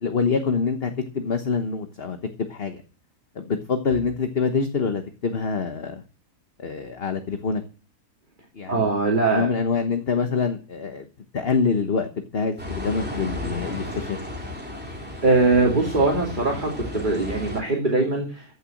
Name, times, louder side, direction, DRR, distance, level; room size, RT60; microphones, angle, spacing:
voice 1, 0.0-2.2 2.5-2.8 3.3-6.0 6.6-7.6 8.5-8.9 9.3-11.1 11.3-14.2, left 5 dB, 40° left, 7 dB, 1.3 m, -25 dB
voice 2, 8.7-9.5 15.2-18.4, right 3 dB, 30° right, 0 dB, 2.9 m, -21 dB
sound 1, 12.6-17.6, left 1 dB, 5° right, 3.1 m, -34 dB
15.0 x 7.1 x 7.8 m, 0.37 s
omnidirectional pair, 1.7 m